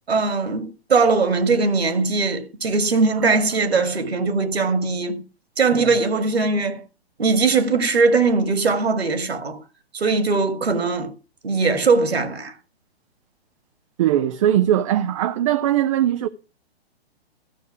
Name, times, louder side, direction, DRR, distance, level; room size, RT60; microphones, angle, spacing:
voice 1, 0.1-5.2 5.6-6.8 7.2-9.6 9.9-11.1 11.4-12.5, right 4 dB, 70° right, 2.1 m, -20 dB
voice 2, 14.0-16.3, right 11 dB, 30° right, 0.6 m, -20 dB
14.0 x 6.7 x 5.9 m
figure-of-eight pair, 120°, 32 cm